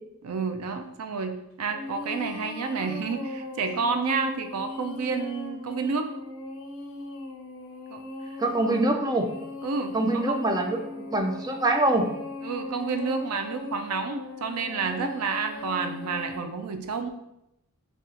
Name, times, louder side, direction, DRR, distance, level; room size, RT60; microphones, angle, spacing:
voice 1, 0.2-6.1 7.9-8.3 9.6-10.5 12.4-17.1, right 4 dB, 75° right, 7 dB, 0.5 m, -30 dB
sound 1, 1.7-16.4, left 2 dB, 65° left, 0.6 m, -39 dB
voice 2, 8.4-9.3 9.9-10.8 11.1-12.1, right 2 dB, 15° right, 4 dB, 0.4 m, -24 dB
4.1 x 2.4 x 3.7 m, 0.84 s
head